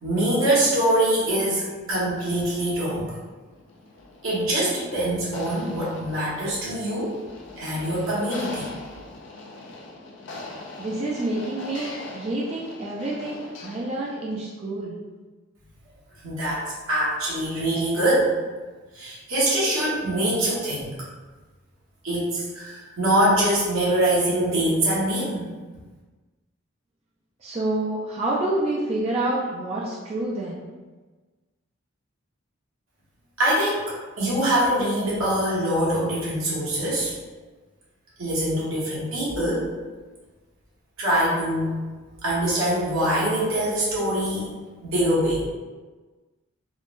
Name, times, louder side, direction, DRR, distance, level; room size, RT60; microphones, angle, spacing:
voice 1, 0.0-3.2 4.2-7.2 7.6-8.7 16.2-18.3 18.9-21.0 22.0-25.5 33.4-37.1 38.2-39.7 41.0-41.8 42.2-44.5 44.8-45.4, right 1 dB, 80° right, -7 dB, 1.1 m, -24 dB
sound 1, 2.2-14.5, left 2 dB, 60° left, 0.4 m, -42 dB
voice 2, 10.8-14.9 27.4-30.6, right 2 dB, 30° right, -5 dB, 0.3 m, -28 dB
3.6 x 2.1 x 2.4 m, 1.3 s
head